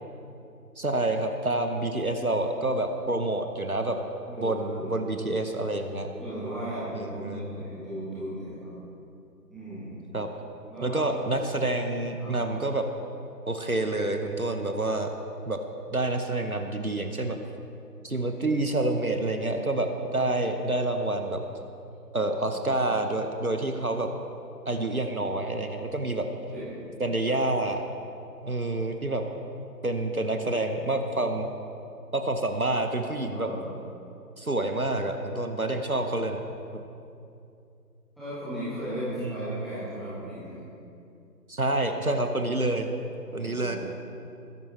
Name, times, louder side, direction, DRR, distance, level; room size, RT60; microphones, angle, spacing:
voice 1, 0.8-4.0 4.4-6.1 6.9-7.6 10.1-10.3 10.8-12.9 13.5-15.1 15.4-15.6 15.9-17.4 18.0-21.4 22.1-24.1 24.7-26.3 27.0-27.8 28.4-29.2 29.8-31.5 32.1-33.5 34.4-36.4 36.7-36.8 39.2-39.5 41.5-42.9 43.3-43.8, right 2 dB, 60° right, 6 dB, 1.1 m, -28 dB
voice 2, 4.2-5.0 6.2-8.7 9.5-10.0 10.7-11.0 12.2-12.3 22.5-22.8 26.5-26.8 33.3-33.7 38.2-40.6 43.3-43.8, equal, ahead, -14 dB, 1.4 m, -36 dB
20.5 x 11.0 x 3.3 m, 2.6 s
figure-of-eight pair, 175°, 50 cm